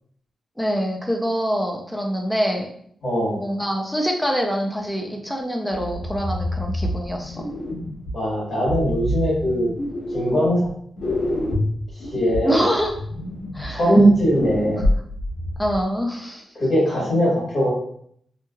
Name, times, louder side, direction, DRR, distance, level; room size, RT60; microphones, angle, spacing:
voice 1, 0.6-2.7 3.4-7.5 12.4-12.9 13.5-13.8 15.6-16.5, equal, ahead, 1 dB, 0.4 m, -25 dB
voice 2, 3.0-3.4 8.1-9.7 10.1-10.7 12.1-12.6 13.7-14.8 16.5-17.7, equal, 30° left, -8 dB, 1.2 m, -20 dB
sound 1, 5.7-8.2 8.7-10.7 11.0-15.8, left 1 dB, 50° left, 1.0 m, -27 dB
2.9 x 2.7 x 2.3 m, 0.65 s
wide cardioid pair, 140°, 0 cm